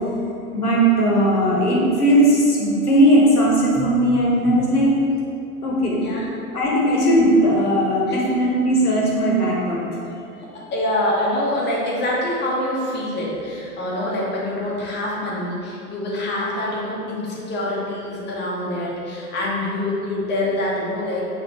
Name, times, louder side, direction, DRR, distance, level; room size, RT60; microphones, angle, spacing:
voice 1, 0.5-4.9 5.6-6.0 6.5-9.8, right 1 dB, 85° left, -4 dB, 1.0 m, -18 dB
voice 2, 6.0-6.3 8.1-8.2 10.4-21.3, left 1 dB, 25° left, -5 dB, 1.1 m, -25 dB
5.3 x 3.3 x 3.0 m, 2.7 s
figure-of-eight pair, 85°, 44 cm